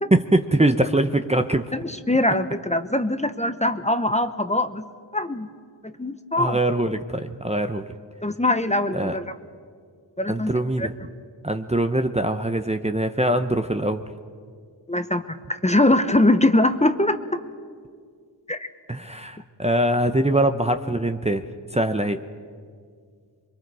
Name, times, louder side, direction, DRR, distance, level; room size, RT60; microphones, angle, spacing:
voice 1, 0.1-1.7 6.4-7.9 8.9-9.2 10.3-10.9 11.4-14.0 18.9-21.5 21.7-22.2, right 1 dB, 15° right, 7 dB, 0.8 m, -22 dB
voice 2, 1.7-4.9 5.1-5.5 5.8-6.6 8.2-9.2 10.2-10.5 10.8-10.9 14.9-17.2 18.5-18.7, left 1 dB, 15° left, 9 dB, 1.0 m, -22 dB
28.0 x 22.5 x 4.8 m, 2.1 s
cardioid pair, 50°, 45 cm